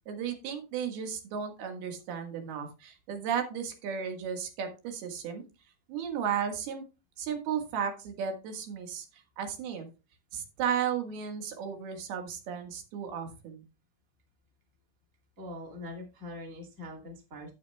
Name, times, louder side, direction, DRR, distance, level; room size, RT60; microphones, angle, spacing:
voice 1, 0.1-5.4 5.9-6.8 7.2-9.9 10.3-13.6, right 8 dB, 85° right, 5 dB, 3.5 m, -34 dB
voice 2, 15.4-17.5, left 1 dB, 20° right, 0 dB, 2.1 m, -43 dB
12.5 x 8.7 x 2.2 m, 0.29 s
omnidirectional pair, 4.4 m